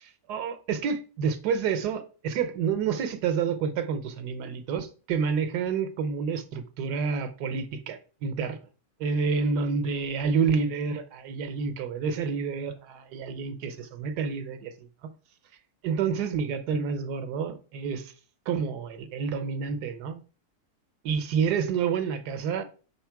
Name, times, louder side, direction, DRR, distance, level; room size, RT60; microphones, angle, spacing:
voice 1, 0.0-8.6 9.0-14.9 15.8-18.1 18.5-20.2 21.0-22.6, right 6 dB, 90° right, 1.4 m, -29 dB
6.3 x 4.4 x 4.6 m
omnidirectional pair, 1.7 m